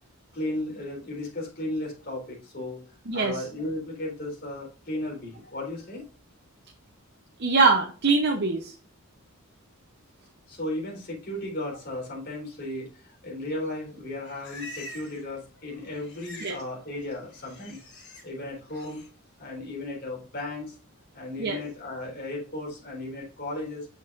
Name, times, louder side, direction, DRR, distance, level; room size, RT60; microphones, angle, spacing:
voice 1, 0.3-2.8 3.1-6.0 10.5-17.8 18.2-19.0 19.4-20.8 21.1-23.9, left 1 dB, 45° left, -3 dB, 3.8 m, -35 dB
voice 2, 3.1-3.4 7.4-8.7 16.4-16.6 21.4-21.6, right 4 dB, 50° right, 2 dB, 0.8 m, -23 dB
Livestock farm animals working animals, 13.9-15.3 15.6-16.6 16.9-18.2 18.7-19.1, equal, 90° left, 4.0 m, -45 dB
8.0 x 6.0 x 2.5 m, 0.39 s
head